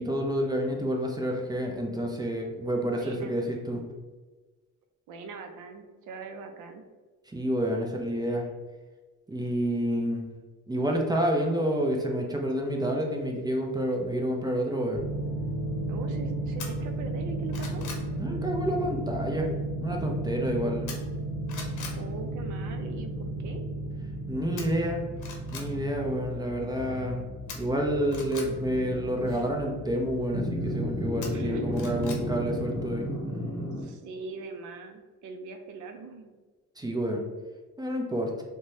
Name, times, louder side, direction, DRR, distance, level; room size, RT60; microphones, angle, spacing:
voice 1, 0.0-3.8 7.3-8.5 9.3-10.2 10.7-15.0 18.2-19.5 19.8-20.9 24.3-25.0 25.5-27.2 27.6-33.2 36.8-37.2 37.8-38.3, equal, 15° right, 0 dB, 0.5 m, -29 dB
voice 2, 2.8-3.4 5.1-6.8 15.9-17.8 21.9-23.6 31.3-31.8 33.8-36.3, right 4 dB, 80° right, 6 dB, 0.5 m, -41 dB
sound 1, 14.9-33.1, right 1 dB, 30° left, 0.7 m, -35 dB
sound 2, 16.6-16.7 17.2-18.1 20.9-21.2 21.5-22.0 24.6-24.7 25.2-25.7 27.5-28.5 31.2-32.2 32.6-32.7, left 5 dB, 80° left, 0.7 m, -41 dB
sound 3, 28.6-29.4 30.3-33.8, equal, 60° right, 1.0 m, -32 dB
3.0 x 2.2 x 2.7 m, 1.3 s
cardioid pair, 90°, 30 cm